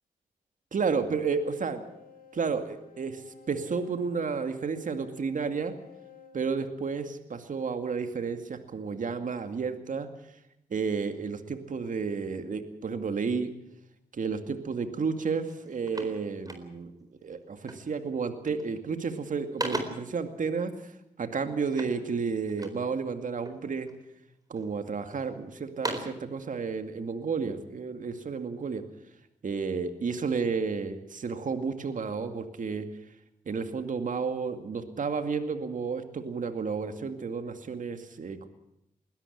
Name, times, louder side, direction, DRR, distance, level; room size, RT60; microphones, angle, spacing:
voice 1, 0.7-1.8 2.3-3.2 3.5-5.7 6.3-10.1 10.7-13.5 14.1-16.9 17.2-20.9 21.2-23.9 24.5-28.8 29.4-32.9 33.5-38.5, right 5 dB, 65° right, 8 dB, 2.3 m, -31 dB
sound 1, 0.8-7.3, left 6 dB, 85° left, 5.1 m, -54 dB
sound 2, 15.0-15.2 15.5-17.0 17.7-18.0 18.3-18.8 19.2-20.2 21.7-22.9 23.4-24.0 24.6-25.2 25.6-26.3, right 2 dB, 25° right, 4.2 m, -38 dB
21.0 x 13.0 x 10.0 m, 0.83 s
cardioid pair, 50°, 15 cm